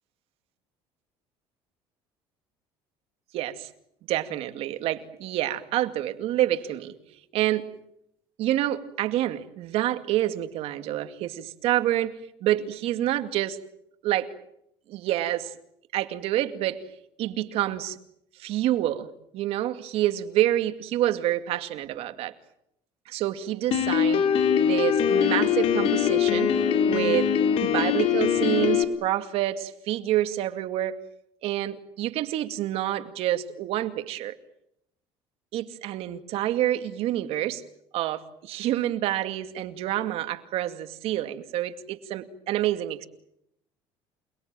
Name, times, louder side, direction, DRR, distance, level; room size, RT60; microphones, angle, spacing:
voice 1, 3.3-3.7 4.1-7.0 7.3-7.7 8.4-12.1 12.4-13.6 14.0-14.3 14.9-15.5 15.9-16.8 17.2-18.0 18.4-19.1 19.3-22.3 23.1-24.3 24.6-26.5 26.9-27.3 27.6-31.0 31.4-34.3 35.5-37.6 37.9-43.1, right 13 dB, 70° right, 9 dB, 2.3 m, -27 dB
Piano, 23.7-28.8, left 8 dB, 60° left, 3.6 m, -22 dB
28.5 x 21.0 x 9.0 m, 0.77 s
cardioid pair, 115°, 11 cm